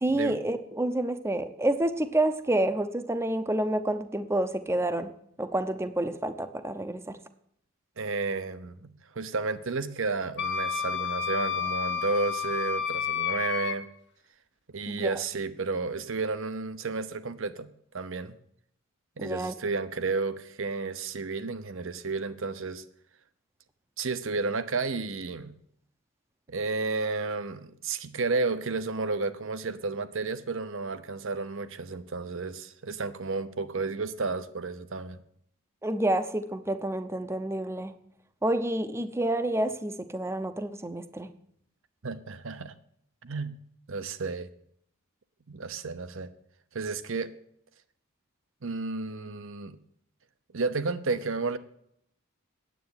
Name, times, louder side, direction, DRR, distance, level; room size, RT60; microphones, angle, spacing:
voice 1, 0.0-5.1 5.4-7.2 14.9-15.1 19.2-19.5 35.8-37.9 38.4-41.3, right 1 dB, 10° right, 0.7 m, -28 dB
voice 2, 8.0-13.9 14.7-17.7 17.9-18.4 19.2-22.8 24.0-25.5 26.5-35.2 42.0-42.7 43.2-43.6 43.9-44.5 45.5-46.3 46.7-47.3 48.6-49.8 50.5-51.6, right 3 dB, 65° right, 0.8 m, -32 dB
Wind instrument woodwind instrument, 10.4-13.7, left 7 dB, 55° left, 1.1 m, -30 dB
9.3 x 8.3 x 9.6 m
head